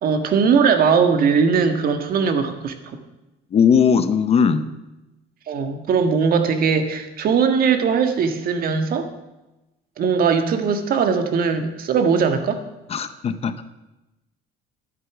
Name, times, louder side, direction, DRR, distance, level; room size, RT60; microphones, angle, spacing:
voice 1, 0.0-3.0 5.5-9.1 10.0-12.6, right 6 dB, 45° right, 7 dB, 1.5 m, -20 dB
voice 2, 3.5-4.7 12.9-13.6, left 6 dB, 30° left, 12 dB, 0.7 m, -18 dB
12.0 x 11.0 x 6.0 m, 1.0 s
cardioid pair, 155°, 20 cm